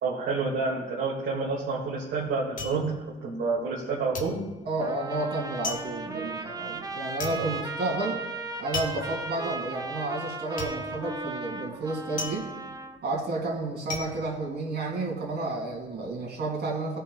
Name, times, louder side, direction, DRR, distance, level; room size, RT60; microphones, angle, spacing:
voice 1, 0.0-2.9 3.2-4.4 6.1-6.3, right 4 dB, 75° right, -5 dB, 1.8 m, -29 dB
sound 1, 1.5-3.8 4.1-15.3 15.6-16.2, left 3 dB, 40° left, 1.5 m, -39 dB
voice 2, 4.6-8.2 8.6-12.5 13.0-17.0, right 2 dB, 55° right, -2 dB, 2.8 m, -31 dB
Trumpet, 4.8-13.0, right 3 dB, 20° right, 0.7 m, -36 dB
16.0 x 5.8 x 2.2 m, 1.2 s
cardioid pair, 90°, 20 cm